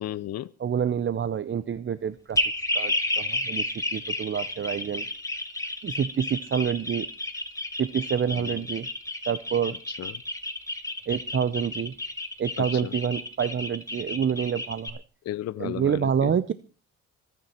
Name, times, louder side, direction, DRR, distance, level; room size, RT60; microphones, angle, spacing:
voice 1, 0.0-0.5 8.3-8.6 9.9-10.2 12.6-12.9 15.3-16.3, left 13 dB, 60° left, 0.6 m, -34 dB
voice 2, 0.6-2.4 2.7-5.1 5.8-7.1 7.8-8.9 9.3-9.8 11.1-11.9 12.4-15.0 15.6-16.5, right 8 dB, 40° right, 0.8 m, -27 dB
sound 1, 2.3-14.9, left 1 dB, 10° left, 2.6 m, -31 dB
23.5 x 9.5 x 4.4 m
cardioid pair, 90°, 30 cm